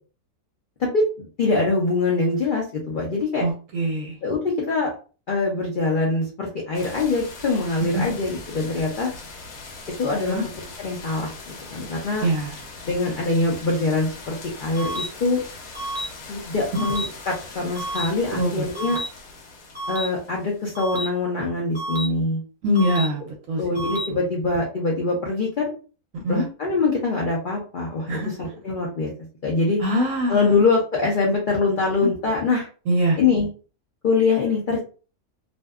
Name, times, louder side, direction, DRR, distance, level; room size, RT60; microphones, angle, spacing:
voice 1, 0.8-3.4 4.2-4.9 5.3-9.1 10.0-10.4 10.8-12.3 12.8-15.4 16.3-19.0 19.9-22.4 23.6-25.7 26.3-29.1 29.4-29.8 30.3-32.7 33.2-33.5 34.0-34.8, left 3 dB, 90° left, -2 dB, 0.4 m, -23 dB
voice 2, 3.4-4.2 7.9-8.0 10.3-10.4 12.2-12.6 18.4-18.7 22.6-23.6 24.1-24.2 26.1-26.5 28.1-28.5 29.8-30.6 32.0-32.1 32.9-33.2, equal, 70° right, 0 dB, 0.9 m, -23 dB
sound 1, 6.7-21.0, left 3 dB, 70° left, 1.0 m, -41 dB
sound 2, 14.8-15.1 15.8-16.1 16.8-17.1 17.8-18.1 18.8-19.1 19.8-20.1 20.8-21.1 21.8-22.1 22.8-23.1 23.8-24.1, right 1 dB, 40° right, 0.8 m, -29 dB
2.6 x 2.1 x 2.3 m, 0.37 s
omnidirectional pair, 1.6 m